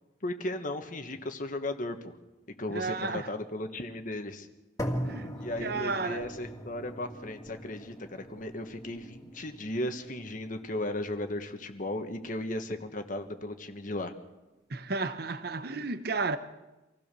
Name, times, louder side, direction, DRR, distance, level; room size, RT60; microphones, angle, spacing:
voice 1, 0.2-2.1 2.6-4.5 5.4-14.1, left 1 dB, 45° left, 1.5 m, -36 dB
voice 2, 2.7-3.3 5.0-6.3 14.7-16.4, right 3 dB, 60° right, 0.9 m, -33 dB
sound 1, 4.8-12.8, equal, 20° left, 2.5 m, -41 dB
26.0 x 16.0 x 6.9 m
head